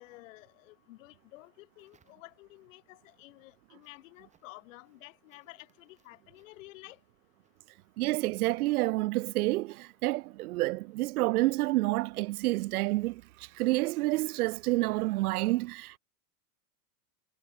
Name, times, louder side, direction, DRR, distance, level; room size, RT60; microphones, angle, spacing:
voice 1, 0.0-7.0, left 20 dB, 55° left, 3.8 m, -52 dB
sound 1, 1.8-2.7 3.1-14.7, right 7 dB, 15° right, 7.8 m, -77 dB
voice 2, 8.0-16.0, right 19 dB, 70° right, 0.7 m, -29 dB
supercardioid pair, 170°, 46 cm